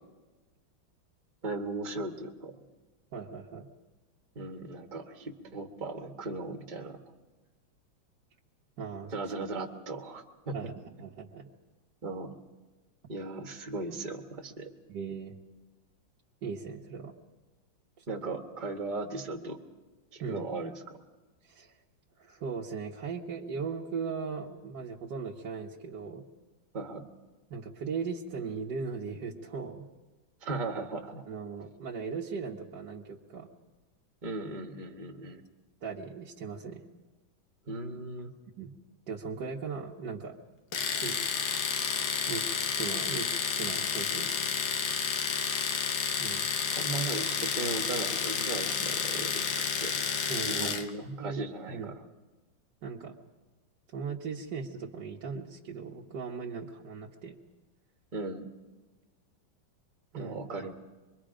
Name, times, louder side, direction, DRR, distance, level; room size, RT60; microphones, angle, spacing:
voice 1, 1.4-2.6 4.3-7.0 9.1-10.6 12.0-12.4 13.1-14.7 18.1-19.6 20.1-21.0 26.7-27.1 30.4-31.2 34.2-35.4 37.7-38.3 46.8-49.9 50.5-51.9 58.1-58.5 60.1-60.7, right 3 dB, 25° right, 2 dB, 1.5 m, -37 dB
voice 2, 3.1-3.7 8.8-9.1 10.5-11.5 14.9-15.4 16.4-17.2 18.0-18.1 20.2-20.5 21.4-21.7 22.2-26.2 27.5-29.9 31.3-33.5 35.8-36.8 38.6-38.7 39.1-40.4 40.9-41.2 42.3-44.3 46.2-46.5 50.3-50.7 51.0-52.0 52.8-53.2 53.9-57.4 60.1-60.7, right 5 dB, 60° right, -4 dB, 1.9 m, -38 dB
Domestic sounds home sounds, 40.7-50.9, left 6 dB, 70° left, 1.8 m, -31 dB
25.5 x 22.5 x 5.1 m, 1.2 s
omnidirectional pair, 2.1 m